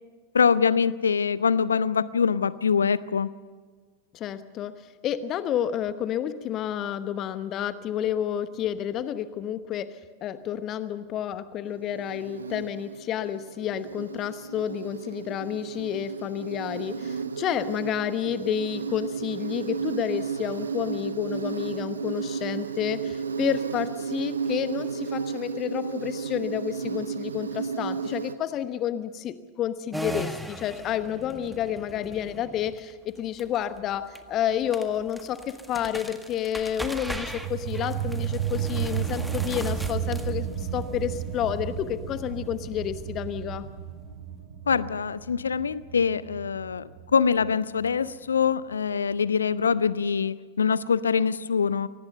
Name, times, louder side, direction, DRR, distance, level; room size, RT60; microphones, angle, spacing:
voice 1, 0.3-3.3 44.7-51.9, left 6 dB, 70° left, 18 dB, 0.7 m, -24 dB
voice 2, 4.1-43.7, left 10 dB, 35° left, 13 dB, 1.1 m, -30 dB
Insect, 11.7-28.3, right 6 dB, 70° right, 1.0 m, -33 dB
sound 1, 29.9-44.1, equal, ahead, 1.7 m, -40 dB
sound 2, 37.1-48.2, right 9 dB, 55° right, 7.2 m, -33 dB
24.0 x 18.5 x 6.7 m, 1.5 s
figure-of-eight pair, 90°, 0 cm